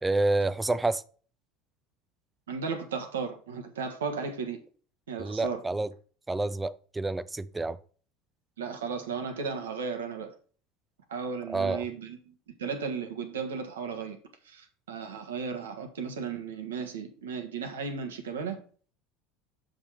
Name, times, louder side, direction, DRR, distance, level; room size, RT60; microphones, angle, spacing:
voice 1, 0.0-1.0 5.2-5.9 6.3-7.8 11.5-11.8, right 2 dB, 15° right, 0.5 m, -28 dB
voice 2, 2.5-4.6 5.1-5.6 8.6-10.3 11.1-12.3 12.6-14.2 14.4-18.6, right 5 dB, 80° right, 1.3 m, -35 dB
7.3 x 5.4 x 4.6 m
hypercardioid pair, 75°, 0 cm